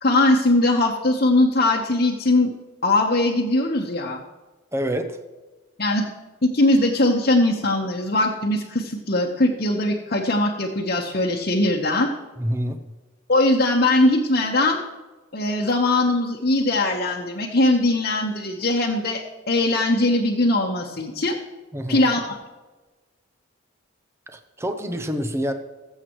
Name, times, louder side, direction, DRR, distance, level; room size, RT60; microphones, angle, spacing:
voice 1, 0.0-2.5 2.8-4.2 5.8-6.0 6.4-12.1 13.3-14.8 15.3-19.2 19.5-21.4 21.9-22.4, left 2 dB, 50° left, -3 dB, 1.2 m, -20 dB
voice 2, 4.7-5.2 12.4-12.8 21.7-22.1 24.3-25.5, equal, 15° right, 7 dB, 0.8 m, -27 dB
20.5 x 7.9 x 3.1 m, 1.2 s
head